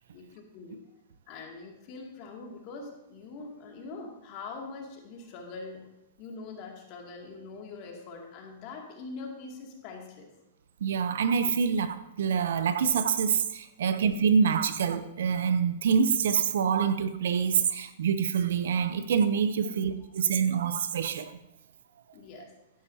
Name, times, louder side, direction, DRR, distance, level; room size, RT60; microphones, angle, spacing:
voice 1, 0.1-0.8 1.3-5.8 6.2-10.3 19.5-19.8 22.1-22.5, left 4 dB, 45° left, 1 dB, 2.4 m, -43 dB
voice 2, 10.8-21.4, right 6 dB, 75° right, 11 dB, 0.7 m, -26 dB
11.5 x 10.0 x 2.8 m, 0.90 s
hypercardioid pair, 115°, 0 cm